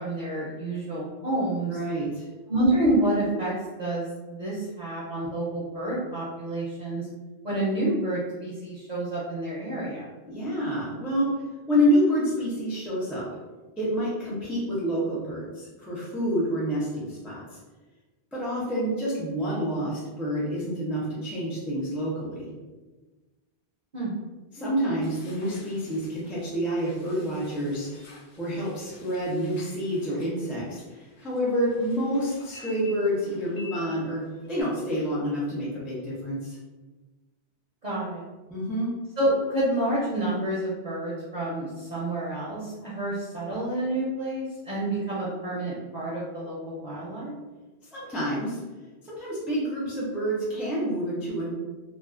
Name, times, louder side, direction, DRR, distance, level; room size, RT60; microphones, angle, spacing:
voice 1, 0.0-1.8 2.5-7.1 7.4-10.1 23.9-24.1 37.8-38.2 39.2-47.3, right 1 dB, 50° right, -8 dB, 0.6 m, -28 dB
voice 2, 1.7-2.2 10.3-11.3 11.7-13.3 13.8-17.6 18.3-22.5 24.5-27.9 28.4-36.6 38.5-38.9 47.9-48.6 49.0-51.5, equal, ahead, -8 dB, 0.4 m, -28 dB
sound 1, 25.0-34.6, left 3 dB, 60° left, 0.7 m, -51 dB
2.4 x 2.3 x 2.4 m, 1.2 s
omnidirectional pair, 1.1 m